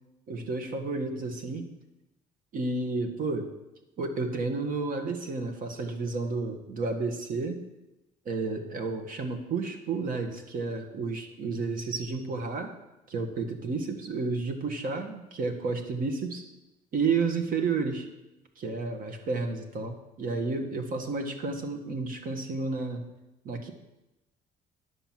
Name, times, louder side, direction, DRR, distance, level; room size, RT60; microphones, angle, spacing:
voice 1, 0.3-1.7 2.5-3.5 4.0-7.6 8.3-12.7 13.1-16.5 16.9-18.1 18.6-23.1 23.5-23.7, right 4 dB, 55° right, 6 dB, 1.6 m, -31 dB
10.0 x 6.1 x 7.5 m, 0.96 s
cardioid pair, 110°, 17 cm